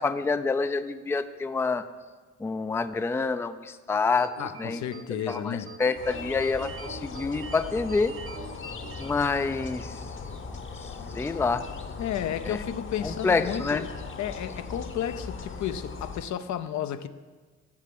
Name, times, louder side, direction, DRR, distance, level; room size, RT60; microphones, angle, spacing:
voice 1, 0.0-1.9 2.4-4.3 4.6-4.8 5.3-8.1 9.0-10.0 10.5-11.6 12.4-12.6 13.0-13.8, left 4 dB, 10° left, 0.4 m, -27 dB
sound 1, 4.2-9.9, right 5 dB, 45° right, 0.8 m, -44 dB
voice 2, 4.4-5.7 12.0-13.9 14.2-17.1, left 9 dB, 65° left, 0.7 m, -32 dB
sound 2, 5.9-16.3, left 4 dB, 40° left, 1.0 m, -39 dB
8.7 x 7.4 x 7.8 m
cardioid pair, 90°, 30 cm